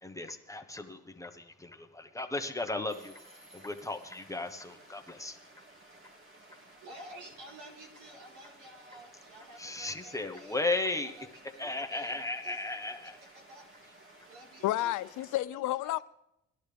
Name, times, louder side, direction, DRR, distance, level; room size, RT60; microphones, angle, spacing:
voice 1, 0.0-3.1 3.5-5.4 9.6-11.1 11.6-13.2, left 2 dB, 10° left, 1.2 m, -35 dB
sound 1, 2.9-4.6, right 1 dB, 20° right, 2.5 m, -60 dB
sound 2, 2.9-15.4, right 2 dB, 40° right, 2.7 m, -57 dB
voice 2, 6.6-10.6 11.0-12.2 12.4-14.0 14.3-15.2 15.5-15.6, right 1 dB, 85° right, 4.2 m, -52 dB
voice 3, 14.6-16.0, left 15 dB, 80° left, 0.5 m, -30 dB
19.0 x 11.5 x 3.5 m
cardioid pair, 90°, 30 cm